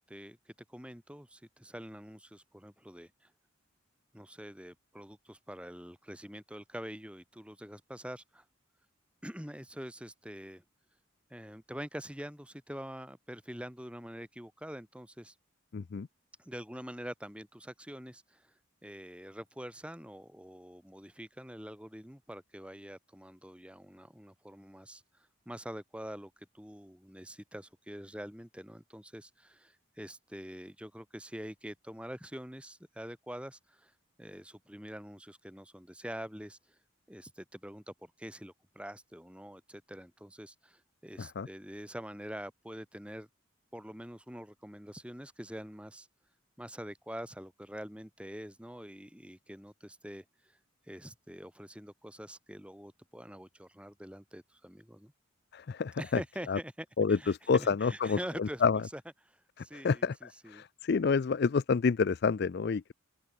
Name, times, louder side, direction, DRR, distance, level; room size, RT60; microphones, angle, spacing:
voice 1, 0.1-3.3 4.1-8.4 9.2-10.6 11.3-15.3 16.4-18.5 18.8-33.9 34.2-36.6 37.1-43.3 43.7-46.1 46.6-50.6 50.9-55.1 56.0-58.6 58.9-59.0 59.3-60.6, equal, 5° right, 4.4 m, -45 dB
voice 2, 15.7-16.1 41.2-41.5 55.5-56.2 56.5-56.6 57.0-58.8 59.7-62.9, left 5 dB, 50° left, 0.4 m, -29 dB
open air
head